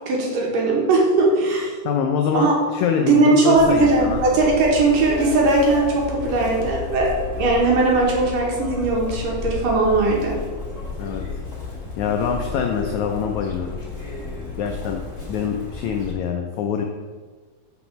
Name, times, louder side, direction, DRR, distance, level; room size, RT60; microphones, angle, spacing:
voice 1, 0.0-1.7 2.3-2.5 3.1-7.1 7.4-10.4, right 3 dB, 70° right, -2 dB, 3.2 m, -19 dB
voice 2, 1.8-4.2 11.0-11.2 11.6-13.8 14.6-15.0 15.3-16.8, left 7 dB, 80° left, 3 dB, 1.7 m, -24 dB
Chirp tweet, 3.6-16.1, left 4 dB, 25° left, 2.4 m, -32 dB
6.1 x 6.0 x 6.9 m, 1.5 s
omnidirectional pair, 4.1 m